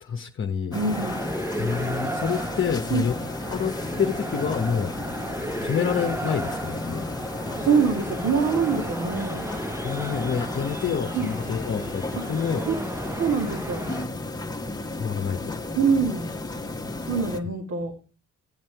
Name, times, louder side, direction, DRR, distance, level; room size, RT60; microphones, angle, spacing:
voice 1, 0.0-0.8 1.6-3.1 3.5-4.9 5.6-7.0 9.8-12.7 14.9-15.6, left 7 dB, 40° left, 3 dB, 1.1 m, -28 dB
sound 1, 0.7-17.4, left 2 dB, 15° left, 1.3 m, -33 dB
sound 2, 0.7-14.1, right 1 dB, 10° right, 0.7 m, -35 dB
voice 2, 0.7-1.3 2.9-3.1 7.6-9.5 11.1-11.3 12.7-12.8 13.2-13.9 15.7-16.3 17.1-17.9, right 5 dB, 60° right, 1 dB, 2.4 m, -24 dB
12.0 x 7.4 x 4.7 m, 0.36 s
cardioid pair, 90°, 30 cm